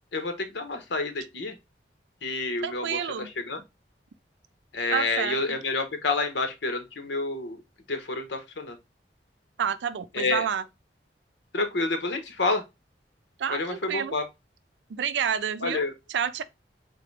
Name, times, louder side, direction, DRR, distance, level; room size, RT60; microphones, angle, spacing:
voice 1, 0.1-1.5 2.2-3.6 4.7-7.6 7.9-8.8 10.1-10.4 11.5-12.6 13.5-14.2 15.6-15.9, left 3 dB, 85° left, 0.9 m, -29 dB
voice 2, 2.6-3.3 4.9-5.6 9.6-10.7 13.4-14.2 14.9-16.4, right 7 dB, 85° right, 0.4 m, -29 dB
3.8 x 3.0 x 3.2 m
head